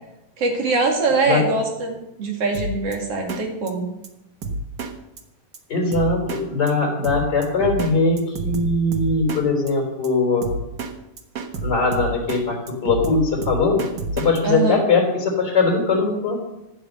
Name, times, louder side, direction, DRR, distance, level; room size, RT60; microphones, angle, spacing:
voice 1, 0.4-3.9 14.4-14.8, right 3 dB, 50° right, 2 dB, 3.1 m, -23 dB
Drum kit, 2.5-3.0 3.3-3.4 3.7-3.8 4.0-4.1 4.4-4.9 5.2-5.3 5.5-5.6 5.9-6.4 6.7-6.8 7.0-7.9 8.2-9.4 9.7-9.8 10.0-10.1 10.4-10.9 11.2-12.4 12.7-14.4, right 2 dB, 75° right, 0.9 m, -28 dB
voice 2, 5.7-10.5 11.6-13.8 14.1-16.4, left 3 dB, 30° left, 1 dB, 4.7 m, -20 dB
14.5 x 9.9 x 6.8 m, 0.90 s
omnidirectional pair, 3.9 m